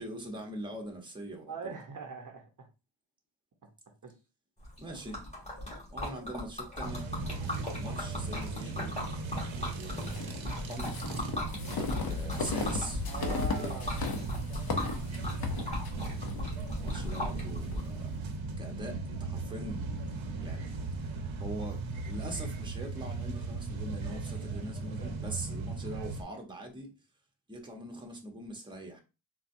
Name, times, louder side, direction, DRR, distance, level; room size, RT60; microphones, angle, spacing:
voice 1, 0.0-1.7 4.8-5.2 5.9-7.1 7.8-8.9 9.8-10.9 11.7-13.7 16.8-18.1 18.6-19.8 20.4-20.7 21.4-26.9 27.5-29.0, right 1 dB, 10° right, 0.9 m, -42 dB
voice 2, 1.5-2.7 4.0-4.2 4.8-5.0 7.6-7.9 13.1-14.3 14.7-14.8, right 4 dB, 40° right, 0.7 m, -42 dB
Liquid, 4.6-17.8, left 1 dB, 15° left, 1.8 m, -38 dB
sound 1, 6.8-26.2, right 3 dB, 70° right, 0.8 m, -38 dB
sound 2, 10.0-17.9, left 4 dB, 45° left, 0.7 m, -37 dB
4.0 x 2.3 x 2.6 m
cardioid pair, 80°, 49 cm